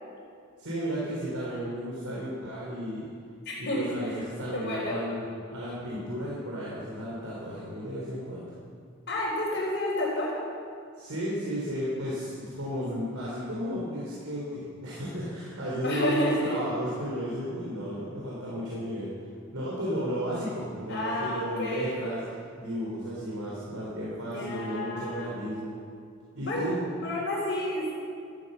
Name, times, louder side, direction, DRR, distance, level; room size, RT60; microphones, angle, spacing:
voice 1, 0.6-3.1 3.6-8.5 11.0-19.1 19.5-22.2 22.6-25.7 26.3-26.8, equal, 85° right, -6 dB, 4.1 m, -33 dB
voice 2, 3.4-4.2 4.5-5.0 9.1-10.3 15.8-16.6 20.9-22.1 24.2-25.5 26.5-26.7 27.0-27.8, left 1 dB, 50° left, -8 dB, 4.0 m, -30 dB
17.5 x 14.5 x 5.6 m, 2.3 s
head